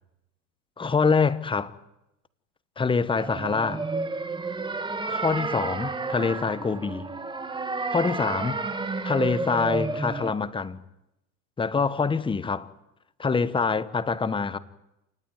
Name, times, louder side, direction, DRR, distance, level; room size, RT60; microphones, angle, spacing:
voice 1, 0.8-1.7 2.8-3.8 5.0-7.1 7.9-8.6 9.0-10.8 11.6-12.7 13.2-14.6, left 5 dB, 10° left, 1.1 m, -25 dB
sound 1, 3.2-10.3, right 3 dB, 10° right, 1.9 m, -31 dB
28.0 x 18.5 x 9.3 m
hypercardioid pair, 115°, 48 cm